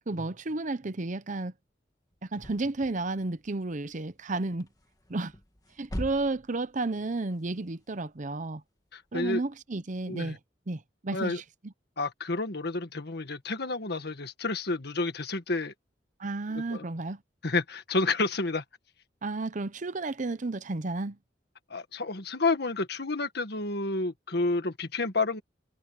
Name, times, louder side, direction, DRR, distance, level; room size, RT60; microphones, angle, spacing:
voice 1, 0.1-1.5 2.2-4.7 5.1-5.3 5.8-8.6 9.1-10.4 10.7-11.7 16.2-17.2 19.2-21.2, right 2 dB, 45° right, 0.8 m, -32 dB
sound 1, 2.1-10.2, equal, 20° left, 1.9 m, -44 dB
voice 2, 8.9-9.4 10.1-10.4 11.1-11.4 12.0-15.7 16.5-16.8 17.4-18.6 21.7-25.4, left 3 dB, 65° left, 1.7 m, -30 dB
head